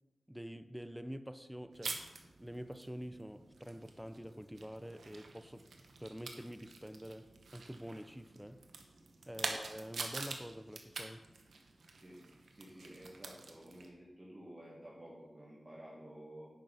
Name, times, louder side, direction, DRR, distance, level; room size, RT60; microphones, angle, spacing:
voice 1, 0.3-2.0 2.4-5.7 6.0-8.6 9.3-11.3, equal, 5° right, 0.4 m, -47 dB
sound 1, 1.7-13.9, right 3 dB, 80° right, 0.9 m, -47 dB
voice 2, 12.5-16.5, right 1 dB, 25° right, 1.6 m, -52 dB
9.3 x 5.5 x 3.9 m
wide cardioid pair, 85°, 0 cm